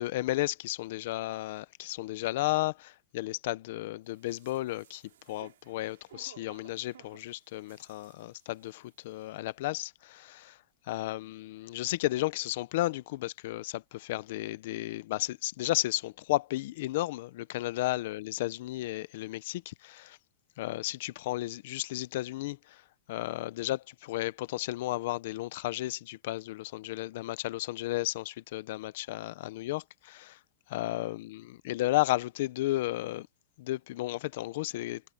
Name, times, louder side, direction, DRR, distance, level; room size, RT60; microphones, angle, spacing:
voice 1, 0.0-5.0 5.3-10.6 10.8-20.2 20.6-30.4 30.7-33.3 33.6-35.0, left 17 dB, 45° left, 0.6 m, -33 dB
sound 1, 4.1-8.9 9.2-9.3, right 11 dB, 70° right, 3.6 m, -58 dB
supercardioid pair, 180°, 0 cm